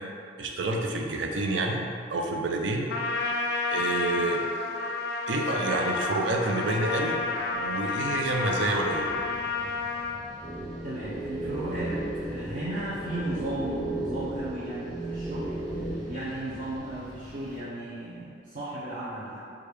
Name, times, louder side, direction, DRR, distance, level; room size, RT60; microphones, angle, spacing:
voice 1, 0.4-1.8 2.1-2.9 3.7-4.4 5.3-7.2 7.5-9.2, right 2 dB, 80° right, 2 dB, 0.5 m, -28 dB
Trumpet, 2.9-10.2, left 3 dB, 60° left, 0.3 m, -30 dB
sound 1, 7.0-17.6, equal, 15° right, 1.0 m, -48 dB
sound 2, 10.4-15.9, right 1 dB, ahead, 0.7 m, -34 dB
voice 2, 10.8-15.5 16.1-19.4, right 1 dB, 45° right, -10 dB, 0.7 m, -35 dB
6.3 x 2.4 x 3.3 m, 2.4 s
head